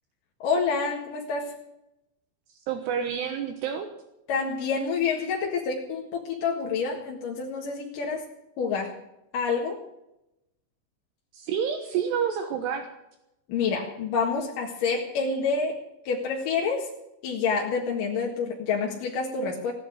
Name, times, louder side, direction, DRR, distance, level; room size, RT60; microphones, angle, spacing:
voice 1, 0.4-1.5 4.3-8.2 8.6-9.0 9.3-9.8 13.5-15.8 16.0-16.9 17.2-19.7, left 5 dB, 60° left, -2 dB, 3.0 m, -28 dB
voice 2, 2.7-3.9 11.3-12.9, right 7 dB, 75° right, 6 dB, 3.2 m, -28 dB
17.0 x 10.0 x 7.7 m, 0.87 s
omnidirectional pair, 5.0 m